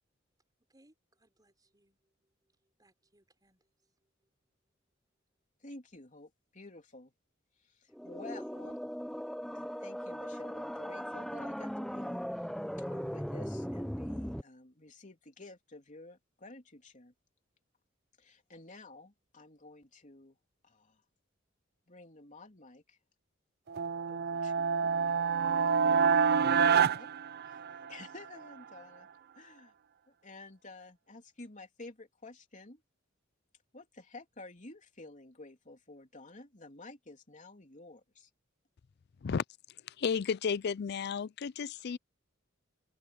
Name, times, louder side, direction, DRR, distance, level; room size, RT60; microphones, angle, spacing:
voice 1, 0.7-2.0 2.8-3.6, right 1 dB, 20° right, 5.5 m, -68 dB
voice 2, 5.6-7.1 7.6-8.8 9.5-12.2 12.9-17.1 18.2-20.4 20.6-21.0 21.9-23.0 24.1-27.1 27.4-27.6 27.9-29.1 29.3-29.7 30.1-32.8 33.7-38.3, left 2 dB, 40° left, 3.4 m, -52 dB
sound 1, 7.9-14.4, equal, ahead, 0.7 m, -38 dB
sound 2, 23.7-28.1, right 6 dB, 55° right, 0.5 m, -27 dB
voice 3, 39.9-42.0, left 6 dB, 55° left, 0.4 m, -33 dB
open air
head